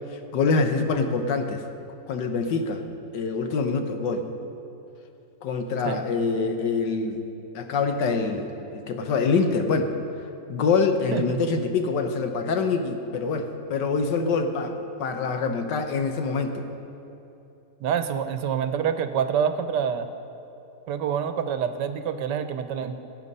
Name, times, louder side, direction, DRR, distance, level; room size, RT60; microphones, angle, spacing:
voice 1, 0.1-1.6 2.1-2.8 3.1-4.3 5.4-7.2 7.5-9.9 10.5-16.7, left 4 dB, 85° left, 6 dB, 1.6 m, -25 dB
voice 2, 17.8-20.1 20.9-23.0, right 8 dB, 85° right, 10 dB, 1.4 m, -26 dB
18.0 x 8.7 x 5.4 m, 2.9 s
omnidirectional pair, 1.8 m